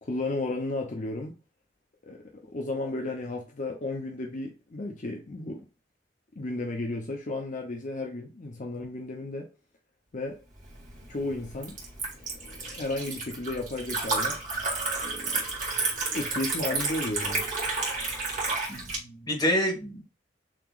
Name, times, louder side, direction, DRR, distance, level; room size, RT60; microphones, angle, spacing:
voice 1, 0.0-1.3 2.0-5.7 6.4-9.5 10.1-10.4 11.1-11.8 12.3-14.4 15.0-15.4 16.0-17.5 18.5-18.6, left 2 dB, 45° left, 0.7 m, -33 dB
Liquid, 10.6-19.0, right 3 dB, 45° right, 1.8 m, -31 dB
voice 2, 18.7-20.0, equal, 25° left, 1.6 m, -28 dB
7.3 x 3.0 x 2.4 m
head